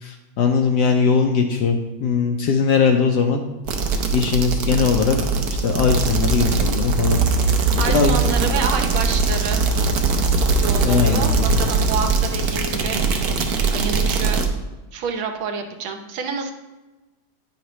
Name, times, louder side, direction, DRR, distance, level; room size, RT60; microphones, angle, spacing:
voice 1, 0.0-3.4 4.1-5.2 5.5-7.2 7.9-8.2 10.8-11.6, left 5 dB, 70° left, 4 dB, 1.1 m, -20 dB
sound 1, 3.7-14.5, right 4 dB, 60° right, 1.1 m, -21 dB
voice 2, 7.5-9.6 10.4-14.4 14.9-16.5, right 5 dB, 80° right, 5 dB, 1.7 m, -28 dB
9.7 x 5.8 x 3.1 m, 1.2 s
omnidirectional pair, 2.2 m